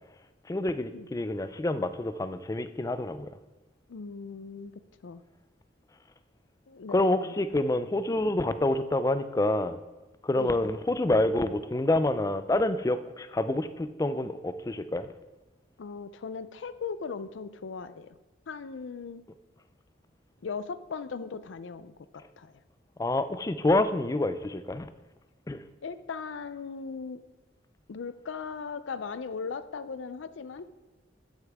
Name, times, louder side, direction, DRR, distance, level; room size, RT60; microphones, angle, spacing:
voice 1, 0.5-3.3 6.9-9.8 10.2-15.1 23.0-24.9 25.5-25.6, left 2 dB, 15° left, 11 dB, 0.3 m, -27 dB
voice 2, 3.9-4.7 5.0-5.2 6.7-7.4 10.4-10.5 15.8-18.1 18.5-19.2 20.4-22.6 25.8-27.2 27.9-30.6, left 5 dB, 80° left, 13 dB, 0.5 m, -38 dB
12.0 x 6.5 x 3.5 m, 1.2 s
head